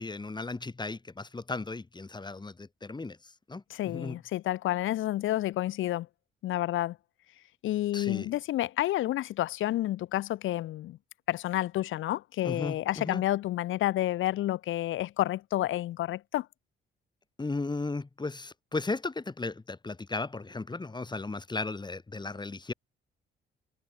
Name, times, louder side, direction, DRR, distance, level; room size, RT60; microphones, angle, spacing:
voice 1, 0.0-3.2 3.5-4.2 7.9-8.3 12.4-13.2 17.4-22.7, left 3 dB, 20° left, 6.4 m, -35 dB
voice 2, 3.7-6.1 6.4-7.0 7.6-11.0 11.3-16.5, left 14 dB, 80° left, 1.5 m, -30 dB
cardioid pair, 90°, 20 cm